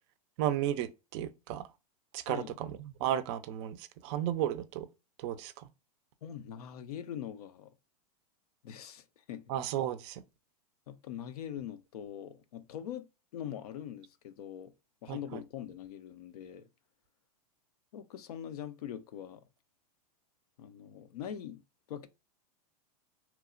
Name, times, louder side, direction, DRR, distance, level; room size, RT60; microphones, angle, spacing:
voice 1, 0.4-1.7 2.1-4.9 5.2-5.7 9.5-10.2 15.1-15.4, right 11 dB, 45° right, 0.4 m, -34 dB
voice 2, 2.3-2.6 6.2-7.7 8.6-9.5 10.9-14.7 15.0-16.7 17.9-19.4 20.6-21.6 21.9-22.1, left 10 dB, 75° left, 0.4 m, -43 dB
2.9 x 2.0 x 2.4 m
hypercardioid pair, 120°, 20 cm